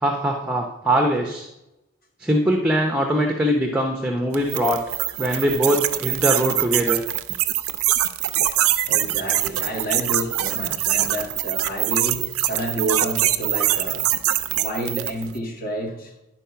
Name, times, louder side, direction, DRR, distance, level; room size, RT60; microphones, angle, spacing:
voice 1, 0.0-1.5 2.2-4.8 5.2-7.0, right 1 dB, 5° right, 0.7 m, -22 dB
sound 1, 4.3-15.3, right 13 dB, 90° right, 0.5 m, -23 dB
voice 2, 8.8-14.1 14.5-16.1, right 1 dB, 45° left, 1.8 m, -29 dB
10.5 x 4.6 x 5.7 m
head